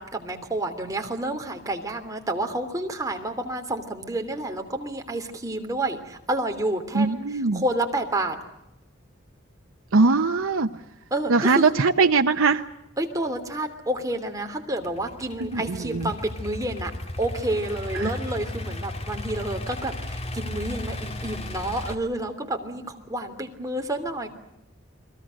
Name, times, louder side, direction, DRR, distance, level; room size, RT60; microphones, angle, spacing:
voice 1, 0.0-8.4 11.1-11.7 13.0-16.9 17.2-24.3, right 1 dB, 15° right, 4 dB, 3.0 m, -29 dB
voice 2, 6.9-7.6 9.9-10.7 11.3-12.6 15.4-16.1 17.9-18.1, right 4 dB, 85° right, 6 dB, 0.8 m, -21 dB
Idling / Accelerating revving vroom, 14.8-21.9, left 1 dB, 30° left, 2.2 m, -35 dB
30.0 x 22.0 x 6.5 m, 0.90 s
head